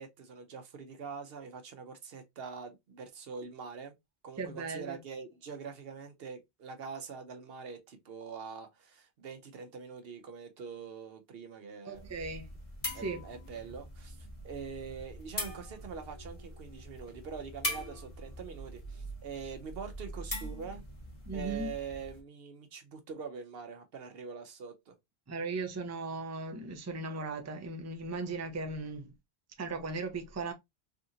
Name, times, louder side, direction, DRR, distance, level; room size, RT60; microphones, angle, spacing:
voice 1, 0.0-3.9 4.2-12.1 12.9-20.8 21.3-25.0, right 5 dB, 65° right, 0.9 m, -44 dB
voice 2, 4.4-5.0 11.8-12.5 12.9-13.2 21.3-21.7 25.3-29.1 29.6-30.5, right 3 dB, 20° right, 0.5 m, -37 dB
sound 1, 11.9-22.2, equal, 35° left, 1.3 m, -42 dB
3.4 x 2.5 x 2.7 m
omnidirectional pair, 1.1 m